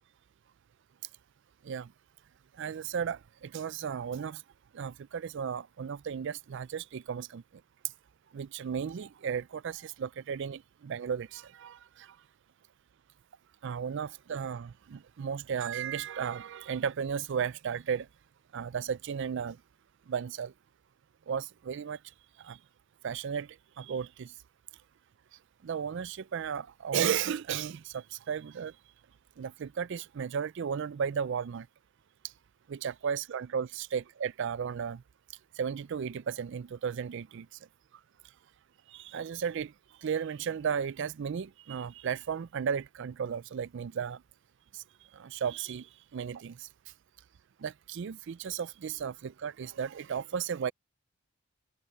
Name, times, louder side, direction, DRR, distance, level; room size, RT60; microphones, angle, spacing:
voice 1, 2.6-4.4 4.7-7.4 8.3-12.2 13.6-18.1 18.5-19.6 20.1-20.5 21.3-22.0 22.4-22.6 23.0-24.3 25.6-28.7 29.4-31.7 32.7-35.0 35.6-37.5 38.9-39.7 40.0-44.2 44.7-44.8 45.1-46.7 47.6-50.7, right 7 dB, 55° right, 0.4 m, -34 dB
head